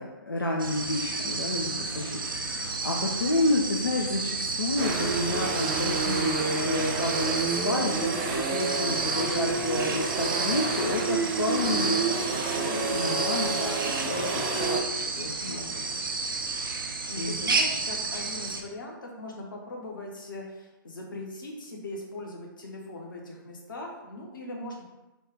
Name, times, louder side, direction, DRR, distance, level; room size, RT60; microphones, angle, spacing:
voice 1, 0.0-2.2 2.5-14.8 15.2-15.8 17.2-17.3, left 2 dB, 90° left, -1 dB, 0.5 m, -30 dB
sound 1, 0.6-18.6, right 3 dB, 70° right, 0.6 m, -31 dB
voice 2, 1.7-2.2 15.4-16.1 16.7-24.9, left 2 dB, 65° left, 0 dB, 0.9 m, -40 dB
sound 2, 4.8-14.8, right 4 dB, 25° right, 0.5 m, -30 dB
4.2 x 2.3 x 3.3 m, 1.0 s
figure-of-eight pair, 120°, 12 cm